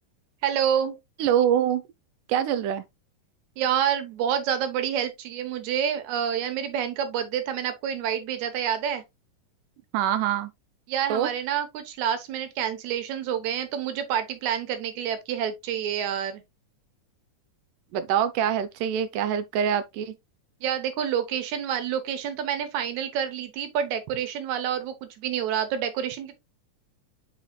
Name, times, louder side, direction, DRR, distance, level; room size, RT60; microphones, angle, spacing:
voice 1, 0.4-1.0 3.6-9.0 10.9-16.4 20.6-26.4, right 9 dB, 70° right, 2.3 m, -28 dB
voice 2, 1.2-1.8 2.3-2.8 9.9-10.5 11.1-11.3 17.9-20.1, right 9 dB, 90° right, 2.2 m, -24 dB
10.0 x 4.3 x 2.2 m
omnidirectional pair, 3.6 m